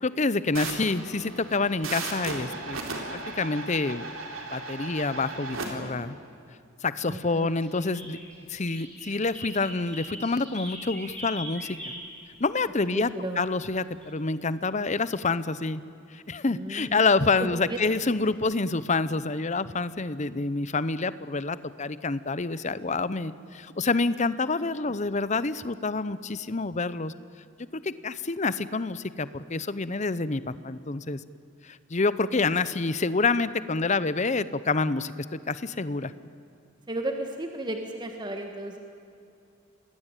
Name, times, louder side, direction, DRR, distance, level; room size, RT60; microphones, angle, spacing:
voice 1, 0.0-2.8 3.1-4.1 4.5-6.2 6.8-8.2 8.5-11.8 12.4-13.1 13.4-15.8 16.1-27.1 27.7-31.2 31.6-36.1, left 3 dB, 35° left, 15 dB, 0.8 m, -27 dB
sound 1, 0.5-5.7, right 3 dB, 75° right, 4.1 m, -36 dB
voice 2, 7.1-7.5 12.9-13.4 16.5-17.1 17.4-17.8 24.6-24.7 36.9-38.8, right 1 dB, 20° right, 3 dB, 1.7 m, -34 dB
sound 2, 7.4-12.1 14.0-14.1, equal, 5° left, 7.5 m, -41 dB
26.5 x 20.5 x 9.1 m, 2.6 s
head